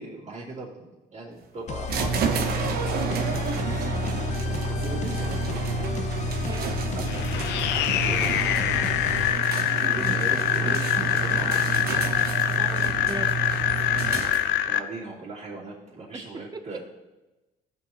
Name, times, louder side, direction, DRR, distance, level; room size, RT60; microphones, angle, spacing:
voice 1, 0.0-3.4 4.7-5.6 6.9-7.2 7.7-9.4 9.9-11.7 14.7-16.8, right 3 dB, 45° right, -9 dB, 2.8 m, -39 dB
sound 1, 1.7-9.3, left 8 dB, 45° left, 0.6 m, -32 dB
sound 2, 1.9-14.7, right 5 dB, 65° right, 1.0 m, -29 dB
voice 2, 6.4-6.8 9.7-10.2 12.5-13.3 16.1-16.3, right 3 dB, 25° right, 9 dB, 0.8 m, -39 dB
sound 3, 7.1-14.8, left 11 dB, 85° left, 0.6 m, -25 dB
15.0 x 7.1 x 3.0 m, 1.1 s
cardioid pair, 110°, 17 cm